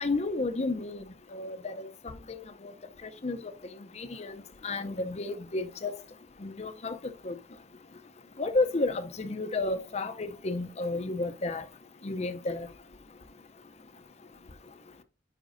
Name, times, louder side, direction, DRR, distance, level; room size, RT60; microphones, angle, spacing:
voice 1, 0.0-1.0 1.3-1.9 2.6-2.7 3.2-3.4 4.0-4.3 4.6-5.9 6.4-7.0 7.2-7.3 8.4-11.6 12.0-12.7, left 2 dB, 40° left, 0.6 m, -31 dB
9.8 x 5.1 x 2.6 m
head